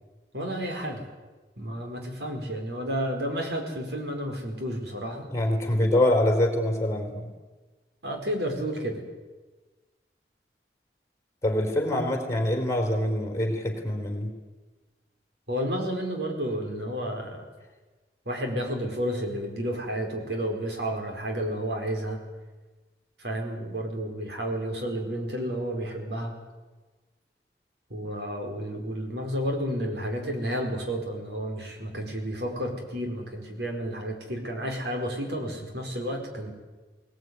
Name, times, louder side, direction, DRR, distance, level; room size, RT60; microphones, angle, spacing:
voice 1, 0.3-1.1 1.6-5.3 8.0-9.0 15.5-17.4 18.2-22.2 23.2-26.3 27.9-36.5, equal, 75° right, 3 dB, 4.8 m, -31 dB
voice 2, 5.3-7.3 11.4-14.3, left 1 dB, 15° left, 4 dB, 3.9 m, -25 dB
20.0 x 20.0 x 9.6 m, 1.2 s
head